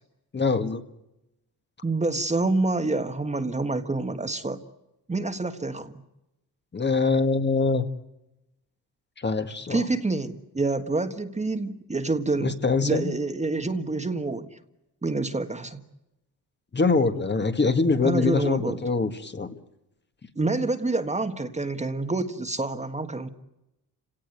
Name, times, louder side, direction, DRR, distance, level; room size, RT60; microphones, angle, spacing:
voice 1, 0.3-0.8 6.7-7.9 9.2-9.8 12.4-13.1 16.7-19.5, left 4 dB, 25° left, 8 dB, 1.7 m, -24 dB
voice 2, 1.8-4.6 5.1-5.9 9.7-12.5 12.8-14.5 15.0-15.8 18.0-18.8 20.3-23.3, right 3 dB, 15° right, 8 dB, 1.6 m, -27 dB
30.0 x 18.0 x 9.3 m, 0.93 s
cardioid pair, 110°, 40 cm